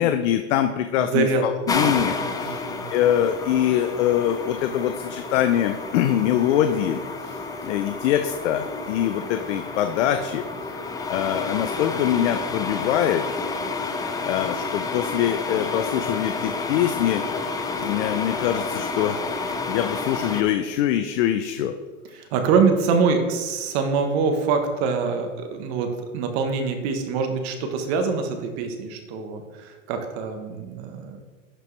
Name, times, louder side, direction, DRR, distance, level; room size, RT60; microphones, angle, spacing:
voice 1, 0.0-2.1 2.4-2.6 2.9-10.4 11.1-13.2 14.3-17.2 17.7-19.2 19.7-21.7, left 11 dB, 65° left, 8 dB, 0.6 m, -23 dB
voice 2, 1.0-1.4 1.8-2.9 22.1-31.2, right 5 dB, 55° right, 6 dB, 1.2 m, -25 dB
sound 1, 1.7-20.4, left 3 dB, 10° left, 0.4 m, -30 dB
11.0 x 4.5 x 3.2 m, 1.3 s
hypercardioid pair, 115°, 38 cm